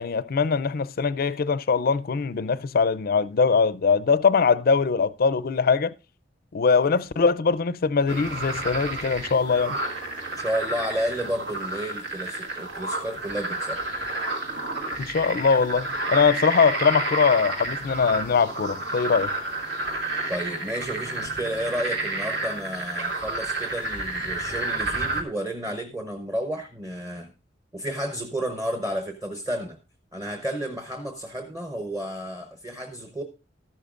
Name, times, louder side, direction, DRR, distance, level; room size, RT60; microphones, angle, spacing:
voice 1, 0.0-5.9 6.5-9.8 15.0-19.3, left 5 dB, 55° left, 0.4 m, -22 dB
sound 1, 8.1-25.2, right 2 dB, 75° right, 2.0 m, -30 dB
voice 2, 10.4-13.8 20.3-27.3 27.7-29.8 30.1-33.2, right 1 dB, 15° right, 0.9 m, -31 dB
13.5 x 12.0 x 2.5 m
head